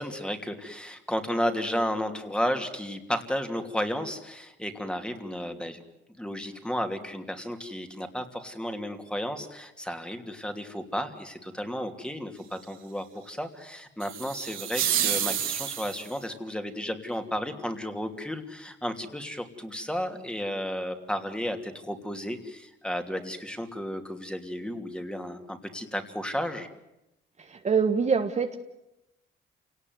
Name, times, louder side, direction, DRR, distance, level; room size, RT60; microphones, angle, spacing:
voice 1, 0.0-5.8 6.2-26.7, equal, 5° left, 6 dB, 3.0 m, -33 dB
sound 1, 14.0-16.2, right 10 dB, 85° right, 3.5 m, -29 dB
voice 2, 27.4-28.6, right 5 dB, 35° right, 6 dB, 1.5 m, -25 dB
28.0 x 18.5 x 9.6 m, 0.91 s
cardioid pair, 90°, 20 cm